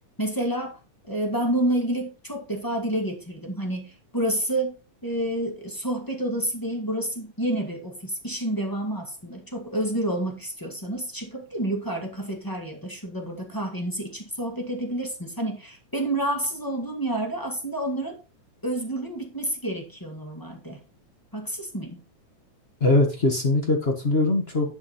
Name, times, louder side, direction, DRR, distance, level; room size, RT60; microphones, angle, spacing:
voice 1, 0.2-0.8 1.1-4.7 5.0-18.2 18.6-20.8 21.3-22.0, right 1 dB, 15° left, 0.9 m, -29 dB
voice 2, 22.8-24.8, left 2 dB, 45° left, 0.7 m, -21 dB
11.0 x 5.4 x 4.3 m
omnidirectional pair, 3.6 m